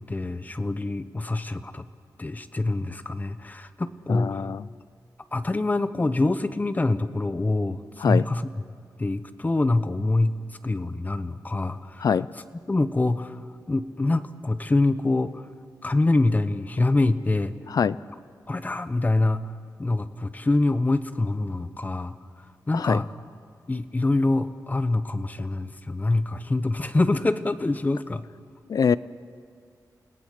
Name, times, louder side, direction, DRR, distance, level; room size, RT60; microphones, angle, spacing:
voice 1, 0.1-1.9 2.2-4.5 5.3-8.5 9.0-10.3 10.6-12.1 12.7-13.4 13.7-15.4 15.8-17.5 18.5-19.5 19.8-22.1 22.7-23.1 23.7-28.2, left 2 dB, 25° left, 12 dB, 0.9 m, -25 dB
voice 2, 4.1-4.6 8.0-8.2 12.0-12.3 17.7-18.0 22.7-23.0 28.7-29.0, left 6 dB, 65° left, 17 dB, 0.5 m, -23 dB
28.5 x 18.0 x 6.6 m, 2.3 s
wide cardioid pair, 135°, 7 cm